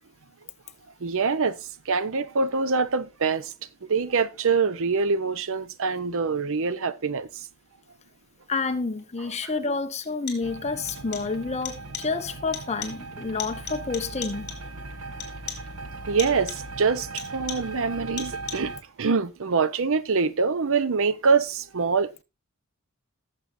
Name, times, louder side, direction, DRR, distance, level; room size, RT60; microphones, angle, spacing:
voice 1, 1.0-3.5 3.8-7.5 16.1-22.2, right 5 dB, 65° right, 0.7 m, -25 dB
voice 2, 8.5-14.5, left 4 dB, 30° left, 0.9 m, -29 dB
sound 1, 9.0-9.1 10.0-10.6 10.9-11.4 11.7-12.2 12.5-13.1 13.4-14.8 15.2-15.8 16.2-16.8 17.2-17.8 18.2-18.8, left 8 dB, 55° left, 3.4 m, -39 dB
sound 2, 10.4-18.8, right 3 dB, 90° right, 1.2 m, -39 dB
18.5 x 7.3 x 2.6 m
head